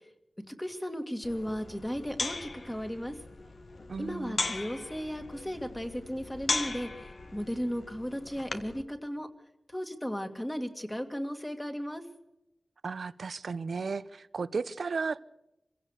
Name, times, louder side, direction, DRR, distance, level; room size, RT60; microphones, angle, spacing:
voice 1, 0.6-3.1 4.0-9.3 9.7-12.0, equal, 10° left, 5 dB, 2.3 m, -35 dB
sound 1, 1.2-8.8, left 3 dB, 65° left, 1.7 m, -38 dB
voice 2, 3.9-4.5 12.8-15.2, right 4 dB, 85° right, 15 dB, 0.8 m, -34 dB
26.5 x 16.5 x 6.7 m, 0.90 s
wide cardioid pair, 105°, 0 cm